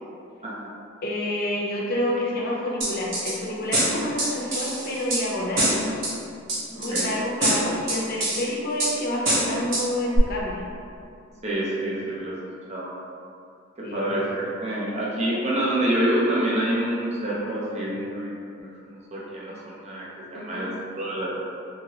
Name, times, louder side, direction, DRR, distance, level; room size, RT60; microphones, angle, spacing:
voice 1, 1.0-5.8 6.8-10.6 13.8-14.0 20.3-20.7, left 1 dB, 50° left, -3 dB, 0.6 m, -28 dB
sound 1, 2.8-3.3 3.7-5.2 5.6-6.1 6.5-7.1 7.4-8.4 8.8-8.9 9.3-9.8 10.2-10.3, right 1 dB, 65° right, 1.0 m, -24 dB
voice 2, 6.7-7.1 11.4-12.4 12.7-12.9 13.8-21.3, right 1 dB, 35° right, -6 dB, 0.6 m, -27 dB
2.9 x 2.8 x 2.8 m, 2.5 s
head